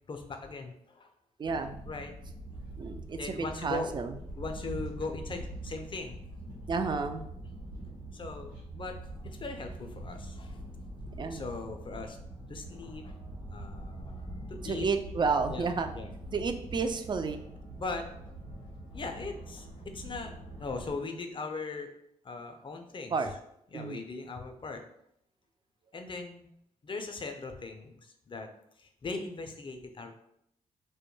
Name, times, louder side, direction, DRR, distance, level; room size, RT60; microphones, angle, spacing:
voice 1, 0.1-1.1 1.9-2.1 3.1-3.9 4.4-6.2 8.1-9.0 9.2-10.6 11.3-12.2 12.5-13.1 13.5-14.9 15.5-16.1 17.8-18.1 18.9-20.3 20.6-21.9 22.2-23.1 23.7-24.8 25.9-26.5 26.8-28.5 28.8-30.1, left 3 dB, 30° left, 5 dB, 0.5 m, -39 dB
voice 2, 1.4-1.8 2.8-4.2 6.7-7.3 11.2-11.5 14.6-15.9 16.3-17.4 23.1-23.3 23.7-24.0, right 4 dB, 30° right, 7 dB, 0.3 m, -31 dB
sound 1, 1.4-20.9, right 1 dB, 85° right, 1.0 m, -43 dB
2.2 x 2.1 x 3.1 m, 0.73 s
hypercardioid pair, 40°, 16 cm